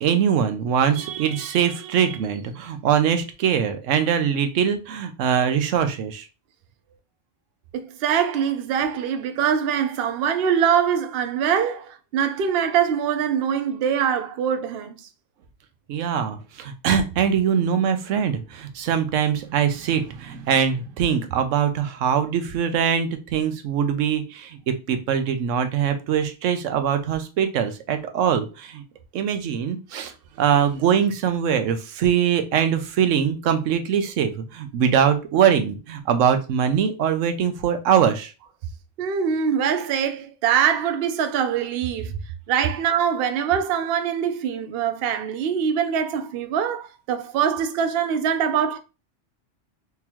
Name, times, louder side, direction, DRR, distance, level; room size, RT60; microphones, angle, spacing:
voice 1, 0.0-6.3 15.9-28.8 29.1-30.1 30.4-38.3, right 8 dB, 85° right, 1.0 m, -22 dB
voice 2, 7.7-15.0 39.0-42.1 42.5-48.8, right 8 dB, 65° right, 0.7 m, -23 dB
3.7 x 2.9 x 2.9 m
omnidirectional pair, 1.3 m